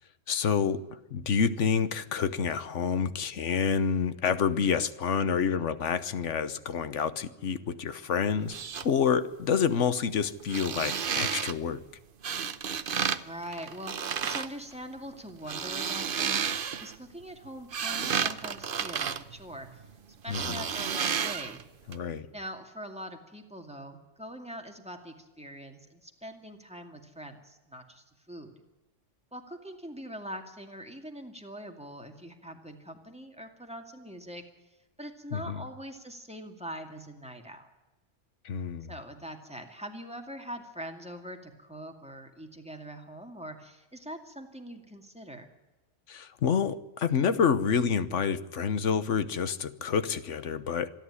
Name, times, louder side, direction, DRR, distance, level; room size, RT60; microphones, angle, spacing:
voice 1, 0.3-11.8 20.3-20.6 21.9-22.3 35.3-35.6 38.4-38.9 46.1-50.9, left 6 dB, 80° left, 13 dB, 1.3 m, -28 dB
sound 1, 8.4-8.9 10.4-11.5 12.2-13.2 13.5-14.5 15.3-16.9 17.4-19.9 20.3-21.6 21.9-22.0, right 7 dB, 50° right, 1.0 m, -31 dB
voice 2, 13.1-16.5 16.8-19.8 20.2-21.6 22.3-28.5 29.3-34.4 35.0-37.7 38.9-45.5, equal, 5° right, 3 dB, 2.3 m, -43 dB
26.0 x 10.5 x 9.9 m, 1.1 s
omnidirectional pair, 1.2 m